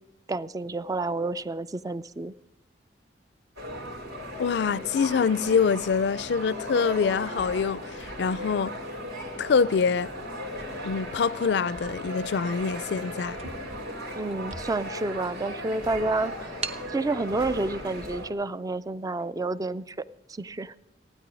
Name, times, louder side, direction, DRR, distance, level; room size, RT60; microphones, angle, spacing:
voice 1, 0.3-2.3 14.1-16.5 16.9-20.7, right 2 dB, 20° right, 0.4 m, -30 dB
sound 1, 3.6-18.3, equal, 65° right, 2.9 m, -37 dB
voice 2, 4.4-8.7 9.4-10.1 10.8-13.4, left 5 dB, 65° left, 0.4 m, -25 dB
sound 2, 10.6-11.8 12.5-12.7 13.0-13.1 13.3-15.1 15.6-15.7 16.6-16.9, right 3 dB, 35° right, 0.9 m, -40 dB
16.0 x 9.7 x 6.1 m
head